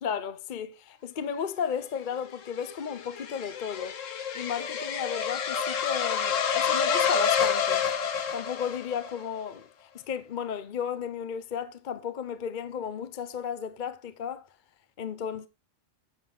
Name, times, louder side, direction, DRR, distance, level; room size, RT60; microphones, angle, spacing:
voice 1, 0.0-4.0 4.3-7.9 8.3-14.5 15.0-15.5, left 7 dB, 45° left, 0.8 m, -34 dB
sound 1, 2.1-9.2, left 7 dB, 80° left, 1.4 m, -28 dB
9.4 x 7.4 x 3.7 m
omnidirectional pair, 1.3 m